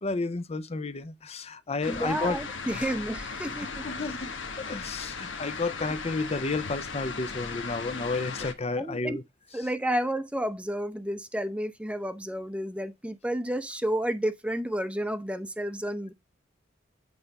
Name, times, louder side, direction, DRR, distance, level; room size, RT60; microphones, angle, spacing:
voice 1, 0.0-2.4 2.7-3.0 3.5-4.3 4.6-9.2, left 3 dB, 35° left, 0.7 m, -32 dB
sound 1, 1.8-8.5, left 4 dB, 90° left, 1.2 m, -37 dB
voice 2, 1.9-3.9 8.8-9.2 9.5-16.1, right 1 dB, 5° right, 0.7 m, -31 dB
8.4 x 3.3 x 5.4 m
head